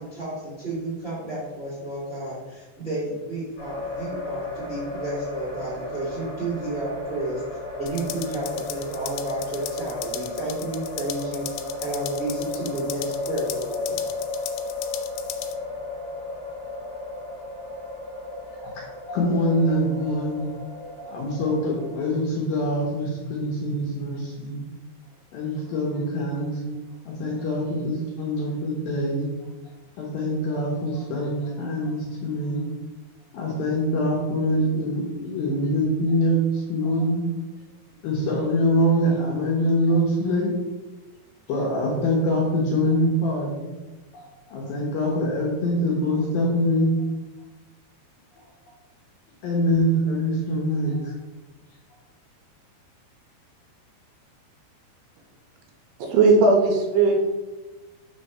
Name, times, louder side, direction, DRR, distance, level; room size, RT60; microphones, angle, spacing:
voice 1, 0.0-7.4 7.8-11.4 11.8-14.0, right 2 dB, 35° right, -9 dB, 0.9 m, -31 dB
sound 1, 3.6-22.0, left 2 dB, 35° left, 2.0 m, -34 dB
sound 2, 7.9-15.5, left 12 dB, 90° left, 2.9 m, -38 dB
voice 2, 19.1-20.5 21.1-24.6 25.3-26.6 27.1-29.3 30.0-32.6 33.3-37.2 38.0-40.5 41.5-43.7 44.1-46.9 49.4-51.1, equal, 70° left, -3 dB, 2.3 m, -24 dB
voice 3, 56.0-57.3, right 3 dB, 80° right, 2 dB, 2.6 m, -18 dB
6.2 x 3.3 x 5.4 m, 1.2 s
omnidirectional pair, 5.1 m